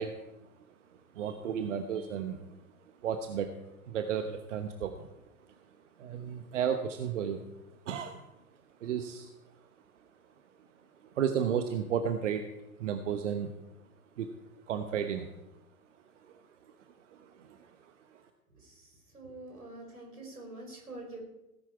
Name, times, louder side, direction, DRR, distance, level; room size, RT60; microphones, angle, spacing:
voice 1, 0.0-2.6 2.9-5.1 5.4-5.6 6.0-8.3 8.8-9.3 11.0-12.5 12.8-13.6 14.2-14.3 14.7-15.3 16.2-18.2, right 8 dB, 55° right, 8 dB, 1.1 m, -34 dB
voice 2, 18.6-18.9 19.1-21.2, right 2 dB, 80° right, 1 dB, 5.1 m, -46 dB
17.5 x 10.5 x 4.7 m, 0.94 s
figure-of-eight pair, 100°, 44 cm